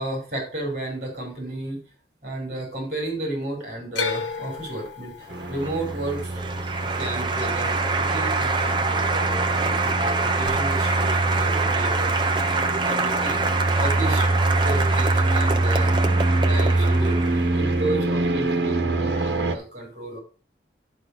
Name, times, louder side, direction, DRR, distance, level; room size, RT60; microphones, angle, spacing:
voice 1, 0.0-1.8 2.2-13.4 13.7-14.3 14.6-15.9 16.4-20.2, right 1 dB, 40° right, 1 dB, 4.5 m, -33 dB
sound 1, 3.9-8.1 8.4-9.1 10.5-10.6, left 4 dB, 85° left, 1.6 m, -33 dB
Applause, 5.3-17.8, right 3 dB, 25° right, 0.8 m, -26 dB
sound 2, 5.3-19.6, right 2 dB, 65° right, 1.4 m, -25 dB
11.0 x 5.0 x 6.2 m, 0.36 s
head